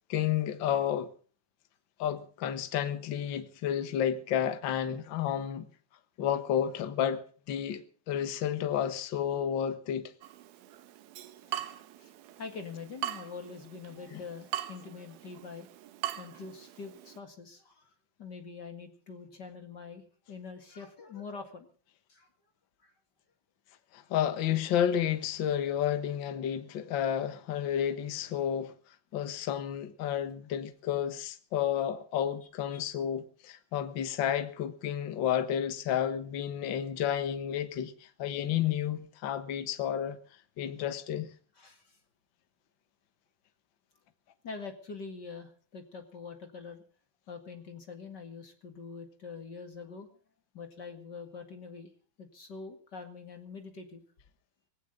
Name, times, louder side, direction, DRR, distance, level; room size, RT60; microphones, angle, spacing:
voice 1, 0.1-1.1 2.0-5.7 6.2-10.1 14.1-14.2 23.9-28.7 29.1-40.2 40.6-41.3, left 9 dB, 70° left, 1.1 m, -31 dB
Water tap faucet / Drip, 10.2-17.2, right 13 dB, 90° right, 2.9 m, -41 dB
voice 2, 12.4-15.7 16.2-17.9 18.2-21.7 22.1-22.3 22.8-22.9 32.7-32.8 41.6-42.0 44.4-46.8 47.3-50.1 50.5-51.9 52.2-54.0, left 5 dB, 35° left, 2.0 m, -44 dB
19.5 x 17.0 x 3.9 m
omnidirectional pair, 4.2 m